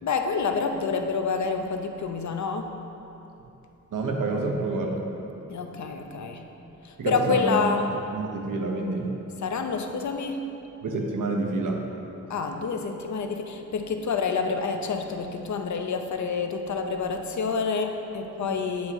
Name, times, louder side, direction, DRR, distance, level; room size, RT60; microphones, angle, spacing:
voice 1, 0.0-2.7 5.5-6.4 6.8-7.9 9.4-10.5 12.3-18.9, left 5 dB, 65° left, 5 dB, 0.6 m, -28 dB
voice 2, 3.9-4.9 7.0-7.6 8.1-9.1 10.8-11.8, right 3 dB, 80° right, 1 dB, 0.9 m, -28 dB
8.5 x 2.9 x 6.1 m, 3.0 s
wide cardioid pair, 90°, 31 cm